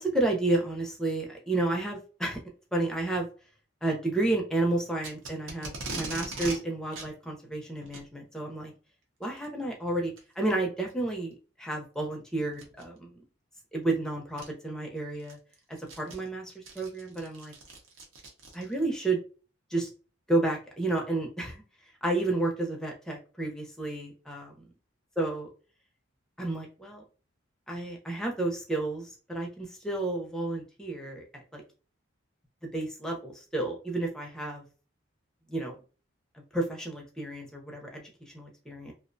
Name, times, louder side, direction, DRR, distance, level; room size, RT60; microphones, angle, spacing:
voice 1, 0.0-2.4 2.7-3.3 3.8-8.7 9.2-13.2 13.7-15.4 15.7-17.5 18.5-19.2 19.7-19.9 20.3-21.6 22.0-24.7 25.2-25.5 26.4-27.0 27.7-31.2 31.5-31.6 32.6-34.7 35.5-35.8 36.3-38.9, right 2 dB, 5° left, 0 dB, 0.5 m, -31 dB
Packing tape duct tape, 5.0-6.6 6.9-7.1 7.8-8.1 9.2-9.5 10.2-10.3 10.9-11.0 12.5-12.8 13.9-14.0 14.4-14.5 15.0-18.9, right 3 dB, 80° right, 0.7 m, -40 dB
2.4 x 2.1 x 2.6 m, 0.36 s
head